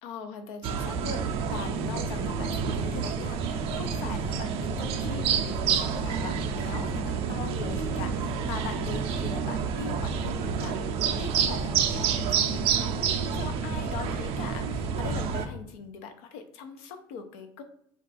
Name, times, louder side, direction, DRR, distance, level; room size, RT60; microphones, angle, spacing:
voice 1, 0.0-17.6, left 5 dB, 85° left, 7 dB, 0.5 m, -41 dB
sound 1, 0.6-15.5, right 6 dB, 60° right, 0.4 m, -29 dB
2.4 x 2.3 x 3.9 m, 0.67 s
cardioid pair, 120°, 12 cm